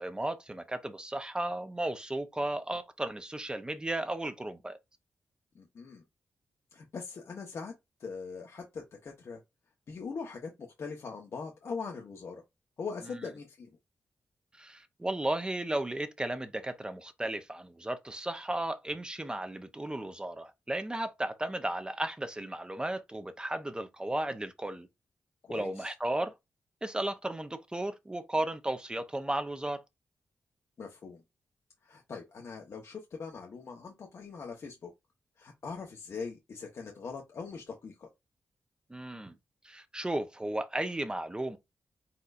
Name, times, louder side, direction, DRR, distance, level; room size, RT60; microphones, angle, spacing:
voice 1, 0.0-4.8 14.6-24.9 25.5-26.3 26.8-29.8 38.9-39.3 39.6-41.6, right 1 dB, 15° right, 0.7 m, -34 dB
voice 2, 5.5-6.0 6.7-7.7 8.0-9.4 9.9-12.4 12.8-13.8 25.4-25.9 30.8-31.2 31.8-34.9 35.4-38.1, left 5 dB, 65° left, 1.0 m, -41 dB
4.3 x 3.9 x 2.5 m
cardioid pair, 65°, 5 cm